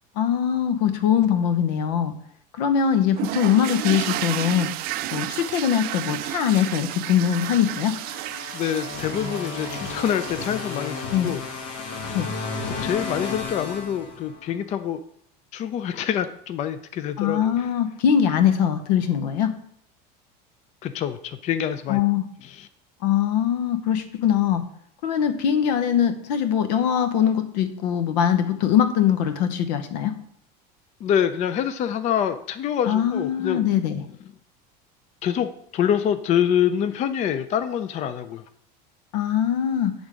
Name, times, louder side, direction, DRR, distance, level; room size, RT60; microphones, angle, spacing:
voice 1, 0.2-2.1 2.6-4.7 5.1-8.0 11.1-11.3 12.1-12.3 17.2-19.5 21.9-22.3 23.0-24.6 25.0-30.1 32.9-34.0 39.1-39.9, left 9 dB, 80° left, 10 dB, 1.0 m, -22 dB
sound 1, 3.2-11.6, right 15 dB, 45° right, 0.4 m, -32 dB
sound 2, 7.7-14.6, left 4 dB, 60° left, 1.3 m, -33 dB
voice 2, 8.5-11.0 11.2-11.4 11.8-12.1 12.8-15.0 15.5-17.7 20.8-22.0 22.6-22.7 31.0-33.7 35.2-38.4, left 9 dB, 35° left, 11 dB, 0.4 m, -26 dB
9.2 x 3.6 x 5.0 m, 0.67 s
supercardioid pair, 130°, 21 cm